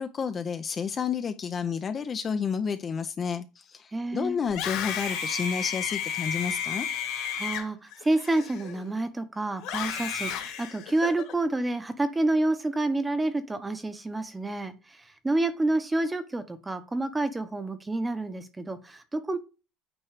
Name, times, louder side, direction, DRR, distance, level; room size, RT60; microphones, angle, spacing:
voice 1, 0.0-6.9, left 6 dB, 25° left, 0.5 m, -30 dB
voice 2, 3.9-4.4 7.4-15.0 15.2-19.4, right 2 dB, 10° right, 0.8 m, -28 dB
Screaming, 4.4-9.0 9.6-11.3, left 8 dB, 70° left, 2.5 m, -33 dB
8.8 x 3.1 x 4.8 m
cardioid pair, 150°, 0 cm